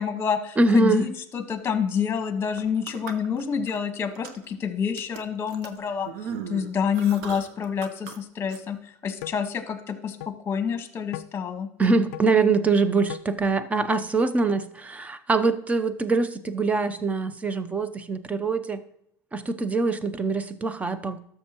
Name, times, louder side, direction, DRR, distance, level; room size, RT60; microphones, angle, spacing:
voice 1, 0.0-6.1 6.5-8.8 9.0-11.7, left 7 dB, 30° left, 7 dB, 1.4 m, -28 dB
voice 2, 0.6-1.1 11.8-18.8 19.3-21.2, right 3 dB, 15° right, 13 dB, 0.7 m, -23 dB
sound 1, 2.5-3.8 4.1-4.5 5.0-8.2 8.5-8.6, right 7 dB, 70° right, 0.9 m, -38 dB
sound 2, 9.2-9.4 10.2-10.3 11.1-11.3 12.1-12.3 13.1-13.3, left 14 dB, 85° left, 0.3 m, -37 dB
12.5 x 6.7 x 3.0 m, 0.73 s
supercardioid pair, 105°, 8 cm